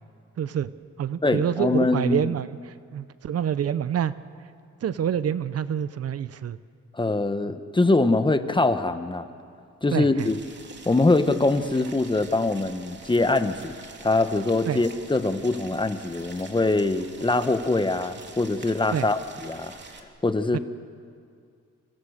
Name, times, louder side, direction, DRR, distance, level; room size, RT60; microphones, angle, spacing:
voice 1, 0.4-0.7 1.0-4.1 4.8-6.6 9.9-10.3 14.6-14.8 18.9-19.1 20.5-20.6, right 9 dB, 55° right, 14 dB, 0.9 m, -27 dB
voice 2, 1.2-2.3 6.9-9.3 9.8-10.4 10.8-13.8 14.0-19.8 20.2-20.6, left 2 dB, 15° left, 9 dB, 1.4 m, -23 dB
Boiling, 10.2-20.0, right 4 dB, 35° right, 3.1 m, -46 dB
29.0 x 25.0 x 6.7 m, 2.3 s
cardioid pair, 90°, 30 cm